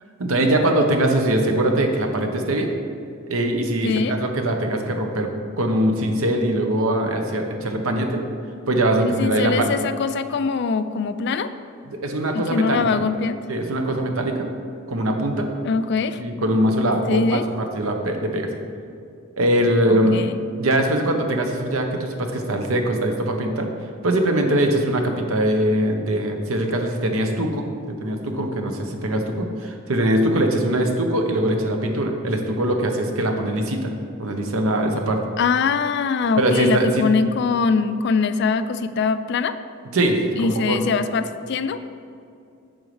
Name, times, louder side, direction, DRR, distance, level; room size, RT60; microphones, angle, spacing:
voice 1, 0.2-2.7 3.3-5.3 5.6-8.2 8.7-9.7 11.9-13.0 13.5-14.5 14.9-15.5 16.2-18.5 19.4-20.2 20.6-23.7 24.0-29.3 29.6-33.9 34.2-35.2 36.4-37.0 39.9-40.8, right 1 dB, 90° right, 4 dB, 0.9 m, -22 dB
voice 2, 3.8-4.2 9.0-11.5 12.3-13.4 15.6-16.2 17.1-17.4 19.9-20.4 35.4-39.6 40.4-42.0, left 5 dB, 55° left, 12 dB, 0.3 m, -23 dB
8.9 x 6.3 x 3.2 m, 2.5 s
head